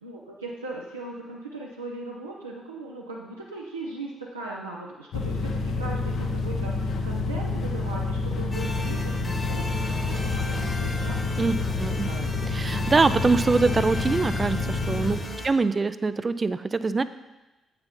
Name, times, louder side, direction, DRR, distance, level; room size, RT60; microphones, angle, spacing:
voice 1, 0.0-12.4 15.2-15.5, right 2 dB, 90° right, -4 dB, 0.6 m, -39 dB
sound 1, 5.1-15.2, left 3 dB, 60° left, 0.9 m, -28 dB
sound 2, 8.5-15.5, left 2 dB, 25° left, 1.3 m, -35 dB
voice 2, 11.4-12.1 12.5-17.0, right 4 dB, 35° right, 13 dB, 0.4 m, -24 dB
8.0 x 6.5 x 4.2 m, 1.1 s
figure-of-eight pair, 40°, 0 cm